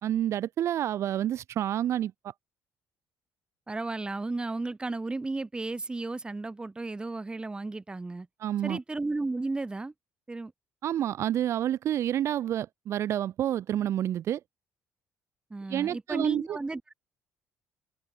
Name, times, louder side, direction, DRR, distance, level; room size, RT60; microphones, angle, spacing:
voice 1, 0.0-2.3 8.4-8.8 10.8-14.4 15.7-16.6, right 11 dB, 60° right, 1.1 m, -29 dB
voice 2, 3.7-8.3 8.6-9.9 10.3-10.5 15.5-16.9, right 3 dB, 15° right, 2.0 m, -34 dB
cardioid pair, 95°, 5 cm